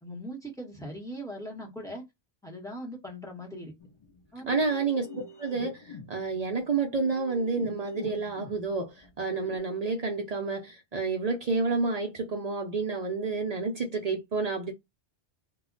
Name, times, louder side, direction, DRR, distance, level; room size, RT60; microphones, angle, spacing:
voice 1, 0.0-2.0 2.4-3.7 4.3-4.5, equal, 5° left, 0.8 m, -40 dB
sound 1, 3.8-9.6, left 1 dB, 50° left, 0.4 m, -44 dB
voice 2, 4.5-14.7, right 4 dB, 55° right, 0.4 m, -30 dB
2.2 x 2.1 x 3.7 m
omnidirectional pair, 1.1 m